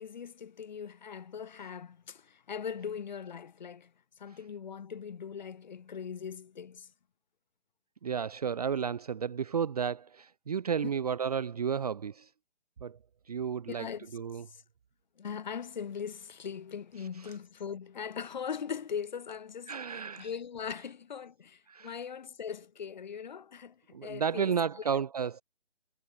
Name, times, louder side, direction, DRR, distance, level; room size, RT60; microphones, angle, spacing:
voice 1, 0.0-3.9 4.2-6.9 13.7-14.1 14.5-14.6 15.2-24.5 24.9-25.0, left 7 dB, 40° left, 0.7 m, -40 dB
voice 2, 8.0-12.3 12.8-13.0 13.3-14.4 17.2-17.3 19.7-20.3 21.7-22.0 23.9-25.4, right 7 dB, 35° right, 0.9 m, -32 dB
hypercardioid pair, 165°, 34 cm